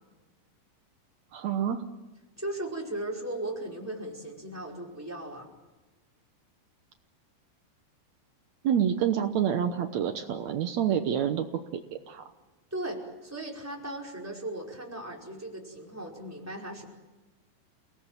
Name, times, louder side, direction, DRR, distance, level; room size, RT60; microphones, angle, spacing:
voice 1, 1.3-1.9 8.6-11.5 11.7-12.2, right 9 dB, 80° right, 6 dB, 1.6 m, -27 dB
voice 2, 2.4-5.5 12.7-16.9, right 1 dB, 5° right, -2 dB, 4.6 m, -37 dB
29.5 x 18.5 x 9.0 m, 1.2 s
omnidirectional pair, 4.8 m